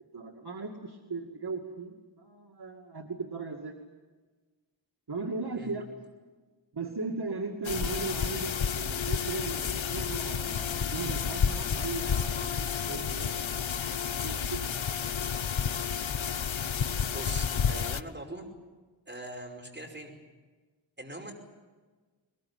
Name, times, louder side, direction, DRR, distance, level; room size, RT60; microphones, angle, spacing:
voice 1, 0.1-3.7 5.1-5.8 6.7-14.8, right 4 dB, 55° right, 2 dB, 2.3 m, -37 dB
sound 1, 7.6-18.0, left 7 dB, 90° left, 0.9 m, -31 dB
voice 2, 17.1-18.5 19.1-20.1 21.0-21.3, right 1 dB, 25° right, 2 dB, 5.3 m, -41 dB
21.5 x 21.0 x 9.7 m, 1.3 s
wide cardioid pair, 85°, 45 cm